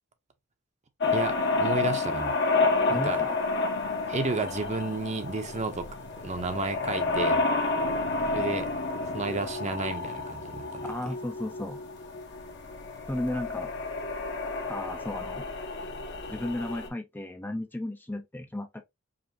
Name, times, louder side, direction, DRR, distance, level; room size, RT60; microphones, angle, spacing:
sound 1, 1.0-16.9, left 3 dB, 60° left, 1.0 m, -30 dB
voice 1, 1.1-2.4 2.9-3.2 4.1-5.9 6.2-7.4 8.3-8.7 9.1-10.9, right 3 dB, 35° right, 0.7 m, -32 dB
voice 2, 2.9-3.3 10.8-11.8 13.1-13.7 14.7-15.5 16.3-18.8, left 1 dB, 10° left, 0.4 m, -34 dB
5.0 x 2.7 x 2.6 m
head